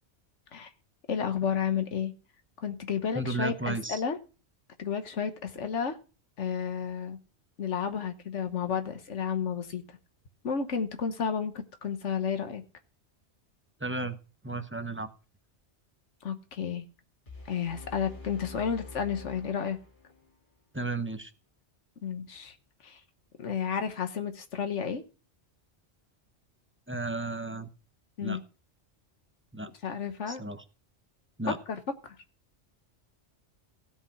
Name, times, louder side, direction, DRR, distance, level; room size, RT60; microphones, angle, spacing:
voice 1, 1.1-2.1 2.6-4.2 4.8-6.0 6.4-7.2 7.6-9.8 10.4-12.6 16.2-16.8 17.5-19.8 22.0-22.5 22.8-23.0 23.4-25.0 28.2-28.4 29.8-30.4 31.7-32.2, left 7 dB, 90° left, 8 dB, 1.5 m, -32 dB
voice 2, 3.1-4.0 13.8-14.2 14.4-15.1 20.7-21.3 26.9-27.7 28.2-28.4 29.5-29.7 30.3-30.6 31.4-31.6, right 2 dB, 10° right, 9 dB, 0.8 m, -33 dB
sound 1, 17.3-20.3, left 3 dB, 45° left, 2.0 m, -46 dB
16.0 x 5.5 x 5.7 m, 0.34 s
omnidirectional pair, 1.2 m